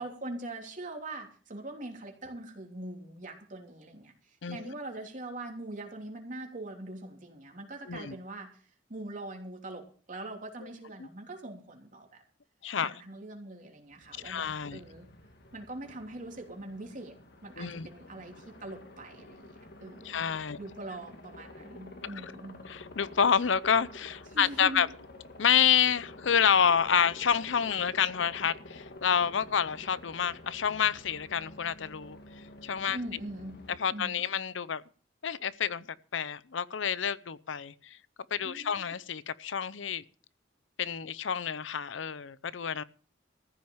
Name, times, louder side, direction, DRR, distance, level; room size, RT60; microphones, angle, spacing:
voice 1, 0.0-8.6 8.9-12.2 12.8-15.1 15.5-17.1 17.4-20.2 20.6-22.6 24.3-24.8 32.9-34.3 38.4-38.9, right 2 dB, 45° right, 3.1 m, -42 dB
voice 2, 12.6-12.9 14.2-14.8 17.6-17.9 20.0-20.6 22.7-24.9 25.4-32.2 32.6-33.0 33.8-34.8 35.2-35.9 36.1-38.0 38.3-40.0 40.8-42.8, left 7 dB, 80° left, 0.6 m, -28 dB
Aircraft, 13.9-33.8, left 1 dB, 60° left, 1.8 m, -50 dB
14.5 x 6.3 x 8.9 m
head